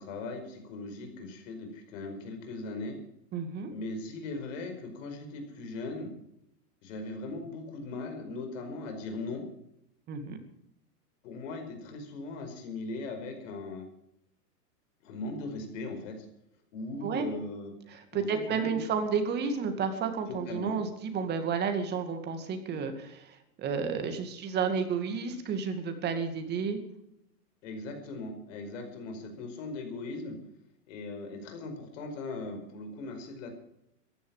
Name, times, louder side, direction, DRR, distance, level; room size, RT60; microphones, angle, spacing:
voice 1, 0.0-3.0 3.7-6.1 6.8-9.4 11.2-13.9 15.0-16.2 16.7-17.7 18.1-18.8 20.3-20.8 27.6-30.4 30.9-33.5, left 2 dB, 50° left, 5 dB, 5.2 m, -39 dB
voice 2, 3.3-3.7 10.1-10.4 17.0-17.3 17.9-26.8, right 6 dB, 20° right, 7 dB, 2.2 m, -31 dB
15.5 x 11.0 x 7.3 m, 0.79 s
hypercardioid pair, 155°, 47 cm